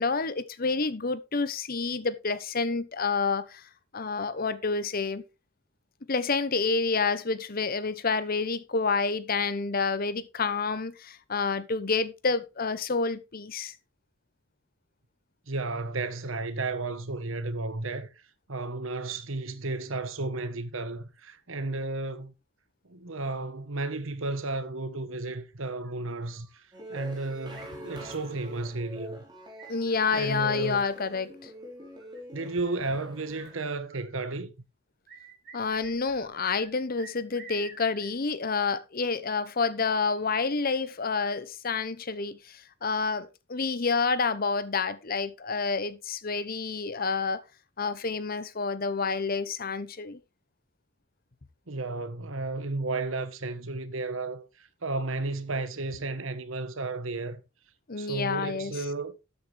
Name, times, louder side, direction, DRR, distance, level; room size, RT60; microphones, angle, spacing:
voice 1, 0.0-3.6 3.9-5.2 6.1-13.7 29.7-31.3 35.5-47.4 47.8-50.2 57.9-58.7, left 4 dB, 45° left, 0.9 m, -29 dB
voice 2, 15.5-18.1 18.5-22.3 22.9-26.6 26.9-29.2 30.1-30.8 32.3-34.5 51.7-57.4 58.0-59.1, right 3 dB, 70° right, 1.3 m, -33 dB
sound 1, 25.8-26.6 27.5-28.7 29.6-30.8 31.8-34.2 35.1-36.7 37.0-38.1, right 4 dB, 45° right, 6.9 m, -51 dB
sound 2, 26.7-33.7, right 1 dB, 20° right, 3.9 m, -45 dB
13.0 x 8.5 x 3.4 m
head